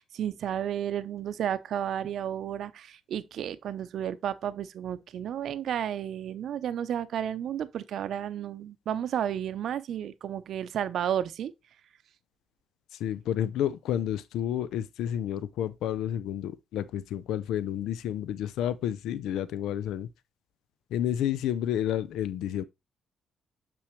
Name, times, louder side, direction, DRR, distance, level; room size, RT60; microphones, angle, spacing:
voice 1, 0.0-11.5, right 10 dB, 70° right, 0.6 m, -32 dB
voice 2, 12.9-20.1 20.9-22.6, left 10 dB, 80° left, 0.4 m, -30 dB
7.0 x 5.8 x 3.2 m
supercardioid pair, 65°, 0 cm